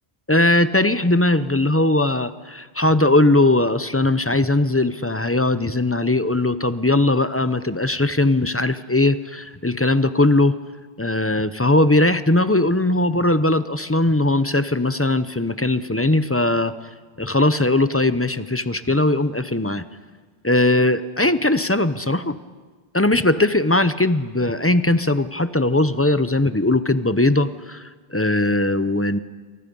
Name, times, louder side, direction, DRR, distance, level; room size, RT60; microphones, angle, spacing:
voice 1, 0.3-10.5 11.0-16.7 17.2-19.8 20.4-22.4 22.9-29.2, left 2 dB, 15° left, 12 dB, 0.6 m, -19 dB
29.0 x 24.0 x 5.4 m, 1.4 s
omnidirectional pair, 1.1 m